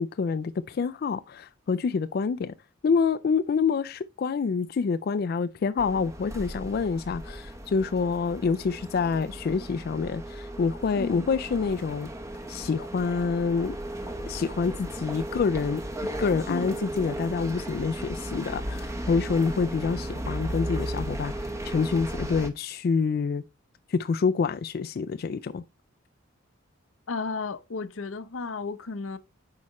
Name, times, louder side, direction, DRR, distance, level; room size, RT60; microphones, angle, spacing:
voice 1, 0.0-2.5 2.8-12.1 12.5-13.7 14.3-23.4 23.9-25.6, left 5 dB, 50° left, 0.3 m, -27 dB
sound 1, 5.8-22.5, right 1 dB, 15° right, 0.8 m, -35 dB
voice 2, 11.0-11.3 16.5-16.7 27.1-29.2, left 4 dB, 85° left, 0.7 m, -33 dB
8.4 x 4.9 x 3.0 m
head